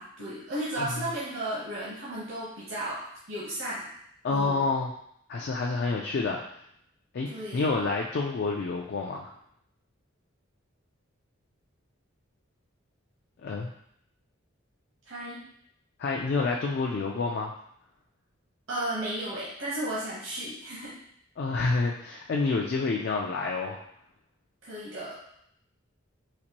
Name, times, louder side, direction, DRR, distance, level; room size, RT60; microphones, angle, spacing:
voice 1, 0.0-3.9 4.3-4.6 7.3-7.6 15.1-15.4 18.7-21.0 21.5-21.7 24.6-25.2, right 1 dB, 65° right, -7 dB, 0.9 m, -34 dB
voice 2, 4.2-4.9 5.3-6.4 7.1-9.3 13.4-13.7 16.0-17.5 21.4-23.8, left 3 dB, 50° left, -1 dB, 0.3 m, -28 dB
4.1 x 2.5 x 2.9 m, 0.70 s
head